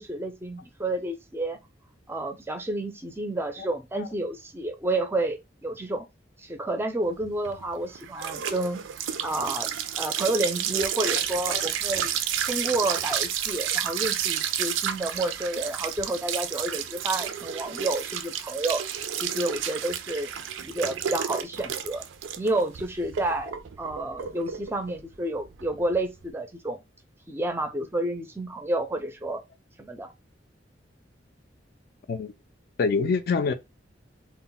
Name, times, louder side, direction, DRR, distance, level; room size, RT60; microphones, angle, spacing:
voice 1, 0.0-1.6 2.1-6.1 6.4-8.8 9.2-9.7 10.0-12.1 12.5-18.8 19.2-20.3 20.6-22.0 22.4-26.8 27.3-29.4 29.8-30.1, right 2 dB, 15° right, 0.4 m, -30 dB
sound 1, 7.2-26.3, right 9 dB, 90° right, 0.4 m, -31 dB
voice 2, 32.8-33.5, left 4 dB, 55° left, 0.3 m, -25 dB
2.1 x 2.0 x 3.8 m
head